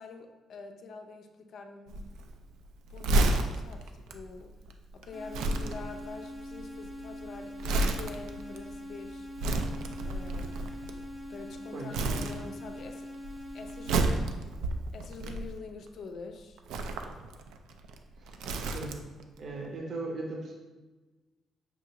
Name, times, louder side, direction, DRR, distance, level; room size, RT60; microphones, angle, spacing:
voice 1, 0.0-2.0 2.9-4.5 4.9-9.3 10.0-10.8 11.3-13.1 13.5-14.1 14.9-16.6, left 4 dB, 65° left, 5 dB, 0.4 m, -46 dB
Crumpling crinkling, 1.9-11.5 11.9-12.9 13.1-15.9 16.6-19.2 19.5-19.7, right 2 dB, 90° right, 0.3 m, -31 dB
sound 1, 5.1-14.1, left 1 dB, 15° right, 0.7 m, -43 dB
voice 2, 18.1-19.0 19.4-20.5, right 2 dB, 55° right, 0 dB, 0.6 m, -38 dB
5.6 x 2.4 x 2.8 m, 1.2 s
cardioid pair, 90°, 0 cm